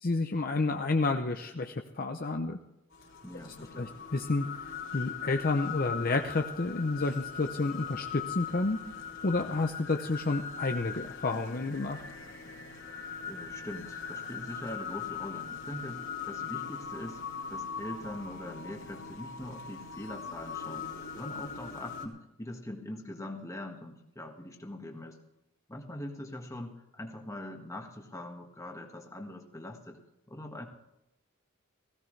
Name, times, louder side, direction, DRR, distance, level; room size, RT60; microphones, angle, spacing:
voice 1, 0.0-2.6 3.8-4.5 4.9-8.8 9.2-12.0, left 3 dB, 40° left, 5 dB, 0.7 m, -30 dB
sound 1, 2.9-22.1, left 7 dB, 60° left, 3.5 m, -41 dB
voice 2, 3.2-4.0 13.2-17.2 17.5-20.9 21.2-25.2 25.7-30.0 30.3-30.7, left 1 dB, 15° left, 2 dB, 1.6 m, -42 dB
17.5 x 16.5 x 3.3 m, 0.89 s
head